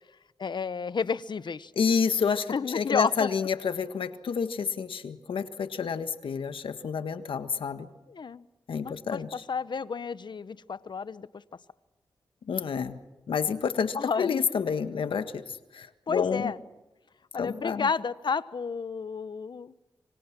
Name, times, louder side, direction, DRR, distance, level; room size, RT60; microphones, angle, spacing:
voice 1, 0.4-1.7 2.5-3.3 8.1-8.4 8.8-11.3 12.8-12.9 13.9-14.4 16.1-16.6 17.3-19.7, left 5 dB, 60° left, 16 dB, 1.0 m, -31 dB
voice 2, 1.7-7.9 8.7-9.4 12.5-13.0 13.3-15.4 15.7-16.5 17.4-17.9, left 6 dB, 85° left, 9 dB, 1.6 m, -29 dB
27.5 x 25.0 x 6.1 m, 1.0 s
cardioid pair, 60°, 9 cm